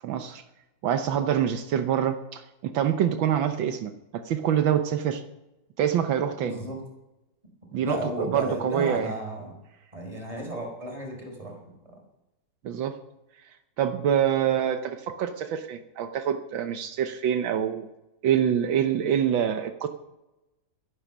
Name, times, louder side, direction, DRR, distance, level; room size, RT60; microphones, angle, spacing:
voice 1, 0.0-0.4 0.8-5.2 5.8-6.6 7.7-9.1 12.6-13.0 13.8-17.9 18.2-19.9, right 9 dB, 80° right, 8 dB, 1.7 m, -26 dB
voice 2, 6.4-6.8 7.8-9.6 9.9-11.6, right 1 dB, 15° right, 0 dB, 4.9 m, -33 dB
13.5 x 11.0 x 6.2 m, 0.96 s
omnidirectional pair, 2.1 m